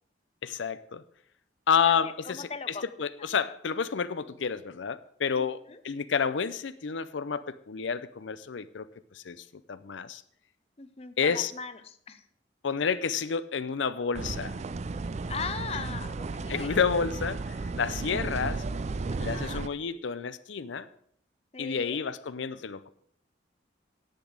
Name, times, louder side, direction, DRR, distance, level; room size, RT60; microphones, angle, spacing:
voice 1, 0.4-1.0 1.7-8.9 9.1-10.2 11.2-11.5 12.6-14.6 16.5-18.6 19.2-20.9 21.6-22.9, left 6 dB, 90° left, 14 dB, 0.6 m, -30 dB
voice 2, 2.0-2.9 3.2-3.3 5.4-5.8 10.8-12.2 15.3-16.8 17.6-18.3 19.1-19.6 21.5-22.0, left 5 dB, 35° left, 11 dB, 0.7 m, -40 dB
sound 1, 14.1-19.7, right 3 dB, 35° right, 0.4 m, -34 dB
10.5 x 8.1 x 6.4 m, 0.64 s
head